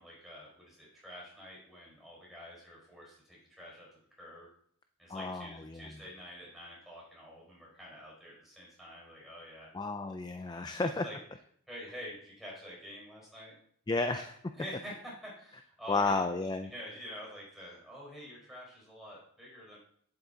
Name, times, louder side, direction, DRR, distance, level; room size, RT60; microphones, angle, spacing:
voice 1, 0.0-3.9 4.2-4.5 5.0-9.7 10.8-11.2 11.7-13.5 14.0-14.2 14.5-16.2 16.7-19.8, equal, ahead, -5 dB, 4.4 m, -47 dB
voice 2, 5.1-6.0 9.7-11.0 13.9-14.4 15.9-16.7, left 3 dB, 20° left, 7 dB, 0.4 m, -32 dB
9.9 x 7.7 x 4.0 m, 0.64 s
head